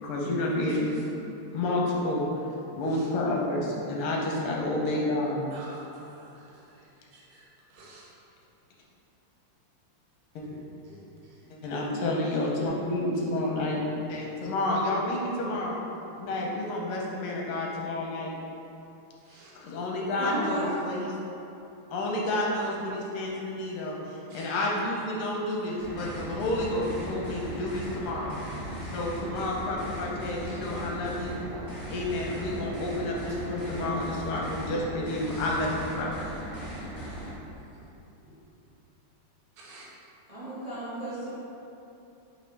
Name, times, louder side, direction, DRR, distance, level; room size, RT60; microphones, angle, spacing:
voice 1, 0.0-1.0 1.5-2.3 2.7-5.4 10.3-10.4 11.6-13.8 14.1-15.8 16.2-18.3 19.5-21.1 21.9-28.3 28.9-31.4 31.9-36.3, left 1 dB, 85° left, -2 dB, 1.7 m, -30 dB
voice 2, 0.7-1.2 2.9-3.1 5.5-8.1 10.4-11.5 19.2-19.6 24.3-24.8 28.2-28.6 30.4-30.6 35.3-35.5 37.5-37.9 38.2-38.4 39.5-40.0, right 1 dB, 70° right, -5 dB, 1.6 m, -51 dB
voice 3, 20.2-20.8 40.3-41.3, right 1 dB, 40° right, -13 dB, 0.5 m, -34 dB
sound 1, 25.8-37.3, right 1 dB, 20° left, 0.5 m, -38 dB
5.0 x 3.2 x 3.2 m, 2.8 s
omnidirectional pair, 2.4 m